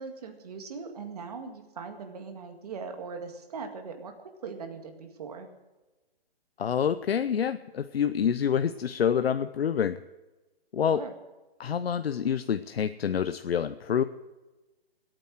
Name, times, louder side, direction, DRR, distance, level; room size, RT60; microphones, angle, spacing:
voice 1, 0.0-4.1 4.4-5.5 10.8-11.1, right 5 dB, 40° right, 5 dB, 2.0 m, -40 dB
voice 2, 6.6-10.0 10.7-11.0 11.6-14.0, left 8 dB, 75° left, 11 dB, 0.7 m, -27 dB
16.0 x 9.1 x 7.5 m, 1.1 s
hypercardioid pair, 170°, 31 cm